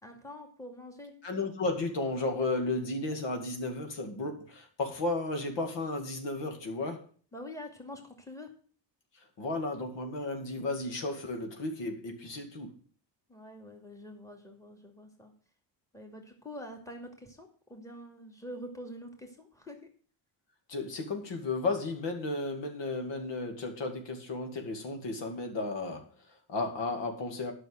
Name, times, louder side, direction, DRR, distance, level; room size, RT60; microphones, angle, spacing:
voice 1, 0.0-1.1 7.3-8.5 13.3-15.3 15.9-19.9, equal, 5° left, 4 dB, 2.4 m, -45 dB
voice 2, 1.2-7.1 9.1-12.8 20.7-27.5, left 2 dB, 65° left, 4 dB, 2.3 m, -34 dB
9.3 x 6.3 x 7.8 m, 0.43 s
cardioid pair, 110°, 47 cm